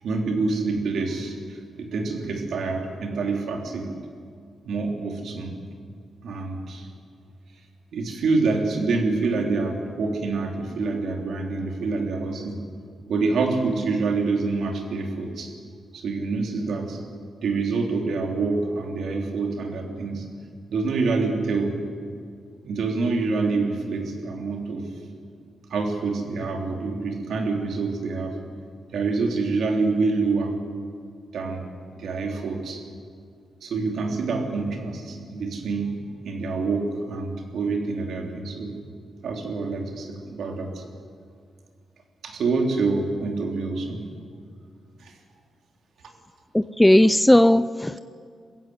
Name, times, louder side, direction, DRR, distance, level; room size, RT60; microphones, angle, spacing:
voice 1, 0.0-3.9 4.6-5.6 6.2-6.9 7.9-12.6 13.1-15.5 15.9-17.0 17.4-20.3 20.7-21.8 22.6-24.9 25.7-28.4 28.9-30.6 31.3-31.6 32.0-32.8 33.6-36.0 36.2-38.8 39.2-40.8 42.2-44.0 45.0-45.1 46.0-46.1, right 3 dB, 75° right, 2 dB, 3.6 m, -26 dB
voice 2, 46.5-48.0, left 1 dB, 10° left, 16 dB, 0.5 m, -17 dB
21.5 x 15.5 x 9.5 m, 2.1 s
cardioid pair, 105°, 0 cm